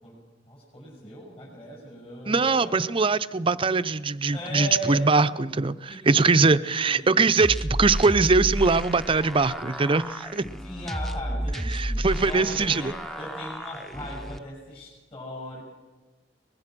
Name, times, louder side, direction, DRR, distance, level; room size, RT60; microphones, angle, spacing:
voice 1, 0.0-2.9 4.3-5.2 5.9-6.5 6.8-7.4 10.6-15.6, equal, 35° left, -2 dB, 6.6 m, -38 dB
voice 2, 2.3-10.4 11.7-12.9, right 4 dB, 30° right, 13 dB, 0.6 m, -22 dB
sound 1, 7.4-14.4, equal, ahead, 0.8 m, -32 dB
23.5 x 21.0 x 6.1 m, 1.2 s
head